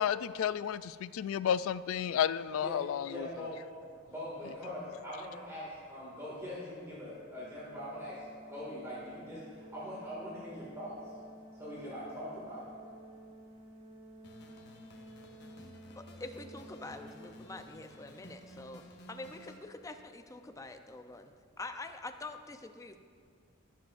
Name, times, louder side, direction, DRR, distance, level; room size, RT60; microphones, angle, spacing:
voice 1, 0.0-3.3, left 9 dB, 90° left, 16 dB, 0.3 m, -32 dB
voice 2, 3.1-3.6 4.0-11.0 11.5-12.7, left 1 dB, 15° right, -8 dB, 2.1 m, -42 dB
Organ, 7.1-17.9, right 1 dB, 75° right, 1.7 m, -53 dB
sound 1, 14.2-19.6, left 1 dB, 60° left, 0.9 m, -54 dB
voice 3, 16.0-23.0, left 2 dB, 15° left, 7 dB, 0.5 m, -46 dB
17.0 x 7.4 x 2.5 m, 2.2 s
head